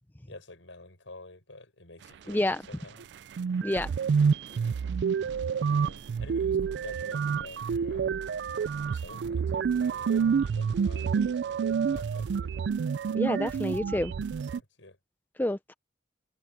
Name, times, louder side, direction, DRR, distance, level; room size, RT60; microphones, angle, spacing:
voice 1, 0.3-3.1 4.5-5.0 5.5-8.3 8.9-12.6 14.4-15.0, left 2 dB, 80° left, 6.5 m, -49 dB
voice 2, 2.3-2.6 3.6-3.9 13.1-14.1 15.4-15.7, left 1 dB, 10° left, 0.5 m, -28 dB
sound 1, 3.0-3.1 3.4-14.6, right 6 dB, 60° right, 0.3 m, -28 dB
head